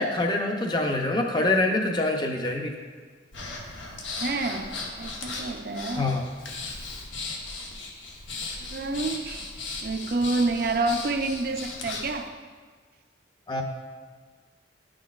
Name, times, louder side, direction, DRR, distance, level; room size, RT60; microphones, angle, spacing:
voice 1, 0.0-2.7 6.0-6.2 13.5-13.6, left 2 dB, 25° left, 2 dB, 0.6 m, -25 dB
Breathing, 3.3-12.2, left 3 dB, 90° left, 1.1 m, -37 dB
voice 2, 4.2-6.1 8.6-12.4, right 3 dB, 50° right, 6 dB, 0.5 m, -29 dB
10.0 x 6.2 x 2.4 m, 1.5 s
head